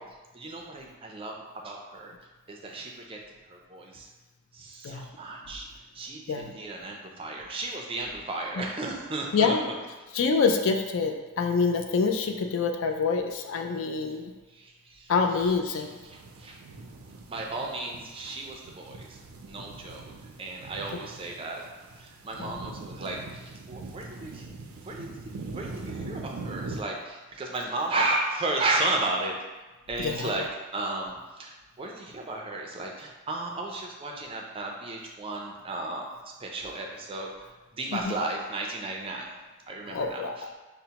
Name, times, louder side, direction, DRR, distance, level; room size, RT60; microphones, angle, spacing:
voice 1, 0.3-1.3 1.6-2.1 2.5-3.2 3.5-4.1 4.5-5.7 5.9-9.8 14.5-15.5 15.8-16.6 17.3-20.1 20.4-21.6 22.0-24.4 24.8-25.2 25.5-29.4 29.9-30.5 30.7-36.1 36.4-37.3 37.7-39.3 39.7-40.2, right 2 dB, 25° right, 0 dB, 0.4 m, -34 dB
voice 2, 10.1-14.3 15.1-15.9 22.4-22.6 30.0-30.3 37.9-38.0 39.9-40.3, left 5 dB, 65° left, 4 dB, 0.4 m, -26 dB
sound 1, 15.8-26.8, right 3 dB, 90° right, 0.4 m, -42 dB
5.2 x 2.1 x 2.8 m, 1.2 s
head